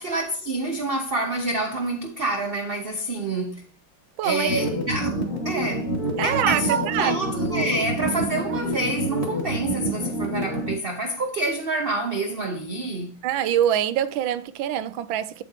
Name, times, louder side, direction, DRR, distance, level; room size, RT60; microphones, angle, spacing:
voice 1, 0.0-3.7 4.2-5.9 6.2-13.2, right 2 dB, 45° right, 0.8 m, -27 dB
voice 2, 4.2-4.5 6.2-7.2 13.2-15.4, right 10 dB, 85° right, 1.4 m, -24 dB
sound 1, 4.5-10.7, right 1 dB, 35° left, 2.4 m, -27 dB
8.4 x 8.4 x 2.8 m
omnidirectional pair, 2.1 m